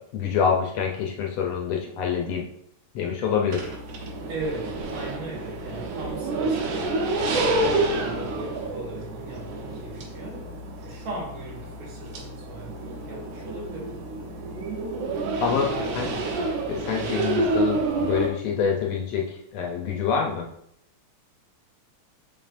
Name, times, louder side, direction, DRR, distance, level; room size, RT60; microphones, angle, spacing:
voice 1, 0.1-2.5 3.0-3.7 15.4-16.1 16.7-20.5, left 6 dB, 70° left, 1 dB, 1.7 m, -26 dB
sound 1, 3.5-18.3, right 2 dB, 90° right, 2.4 m, -29 dB
voice 2, 4.3-6.9 7.6-10.5 10.8-14.1 15.7-15.9 17.1-17.2, right 2 dB, 70° right, -2 dB, 2.9 m, -38 dB
7.7 x 5.0 x 2.6 m, 0.73 s
omnidirectional pair, 3.4 m